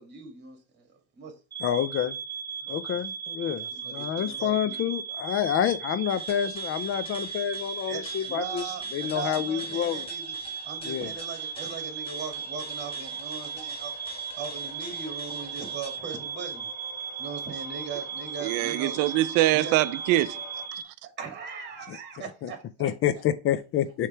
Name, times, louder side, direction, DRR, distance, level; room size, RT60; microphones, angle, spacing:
voice 1, 0.0-1.3 2.6-3.0 3.4-4.8 7.9-10.4 10.6-13.9 14.3-16.7 17.2-19.0 19.5-19.8 21.0-22.9, right 6 dB, 30° right, 2.3 m, -39 dB
sound 1, 1.5-20.8, right 7 dB, 10° right, 1.1 m, -37 dB
voice 2, 1.6-2.2 2.7-8.6 8.9-10.1 10.8-11.1 21.9-22.0 22.4-22.5 22.8-24.1, left 10 dB, 40° left, 0.5 m, -28 dB
sound 2, 6.1-16.0, left 2 dB, 15° left, 1.1 m, -47 dB
sound 3, 7.5-20.7, left 6 dB, 90° left, 1.9 m, -51 dB
voice 3, 18.4-20.4 20.7-20.8, right 16 dB, 70° right, 0.5 m, -24 dB
6.6 x 3.2 x 5.7 m
cardioid pair, 140°, 33 cm